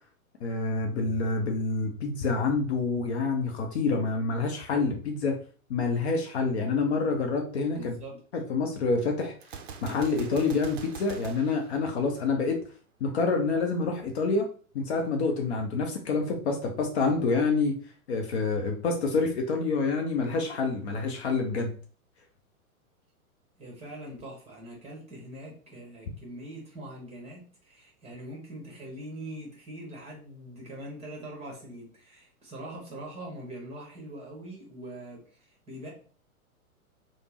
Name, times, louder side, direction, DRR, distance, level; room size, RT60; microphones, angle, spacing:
voice 1, 0.4-5.4 5.7-7.9 8.3-9.3 9.8-12.6 13.0-14.5 14.7-17.8 18.1-21.7, left 4 dB, 50° left, 3 dB, 0.6 m, -27 dB
voice 2, 7.8-8.2 23.6-35.9, right 1 dB, 15° right, -1 dB, 1.0 m, -43 dB
Gunshot gunfire, 9.4-12.5, right 6 dB, 50° right, 0.5 m, -43 dB
3.3 x 2.1 x 2.9 m, 0.41 s
figure-of-eight pair, 110°, 43 cm